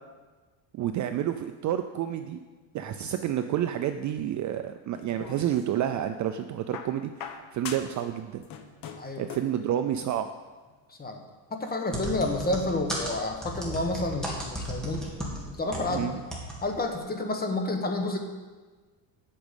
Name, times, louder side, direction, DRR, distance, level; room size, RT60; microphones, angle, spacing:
voice 1, 0.7-2.4 2.7-8.4 9.2-10.3 15.9-16.2, right 11 dB, 40° right, 8 dB, 0.4 m, -29 dB
sound 1, 4.9-5.9 6.7-8.1 8.3-9.6 10.7-10.8, left 7 dB, 45° left, 1.0 m, -42 dB
voice 2, 10.9-11.2 11.5-15.0 15.5-16.1 16.6-18.2, left 2 dB, 20° left, 4 dB, 1.2 m, -30 dB
sound 2, 11.9-16.0 16.3-16.6 16.8-16.9, equal, ahead, 2.2 m, -34 dB
8.7 x 6.2 x 8.2 m, 1.3 s
cardioid pair, 135°, 47 cm